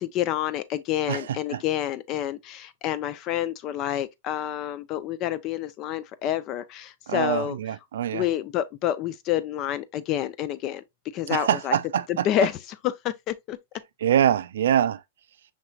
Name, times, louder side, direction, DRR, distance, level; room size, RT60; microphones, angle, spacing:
voice 1, 0.0-7.6 8.1-10.8 11.1-11.8 12.1-12.6 12.8-13.6, left 11 dB, 40° left, 0.5 m, -28 dB
voice 2, 1.1-1.6 7.1-8.2 11.3-12.3 14.0-15.0, right 10 dB, 75° right, 0.4 m, -24 dB
5.8 x 3.1 x 2.4 m
hypercardioid pair, 120°, 0 cm